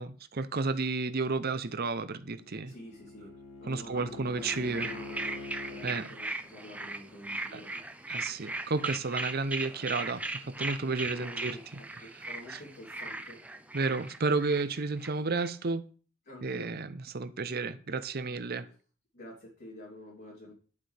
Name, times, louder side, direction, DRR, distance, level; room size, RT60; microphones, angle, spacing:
voice 1, 0.0-2.7 3.7-4.9 5.8-6.1 7.5-7.6 8.1-11.6 13.7-15.8 16.4-18.7, right 3 dB, 45° right, 0.7 m, -32 dB
Bowed string instrument, 2.1-6.0, left 3 dB, 65° left, 1.7 m, -45 dB
voice 2, 2.6-3.3 3.6-7.8 10.9-13.4 16.2-16.7 18.6-18.7 19.1-20.5, left 1 dB, 45° left, 3.4 m, -48 dB
sound 1, 4.4-15.5, right 2 dB, 5° right, 0.6 m, -38 dB
11.0 x 7.6 x 3.4 m
head